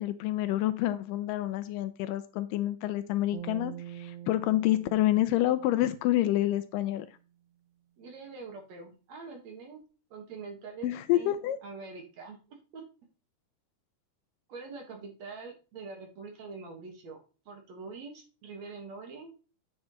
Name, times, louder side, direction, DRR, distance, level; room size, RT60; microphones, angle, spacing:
voice 1, 0.0-7.1 10.8-11.6, left 14 dB, 80° left, 2.1 m, -28 dB
sound 1, 3.3-6.7, right 11 dB, 90° right, 2.5 m, -45 dB
voice 2, 8.0-9.8 10.1-11.3 11.6-12.8 14.5-17.2 17.5-19.3, right 4 dB, 60° right, 2.4 m, -44 dB
9.3 x 7.5 x 3.0 m
omnidirectional pair, 4.1 m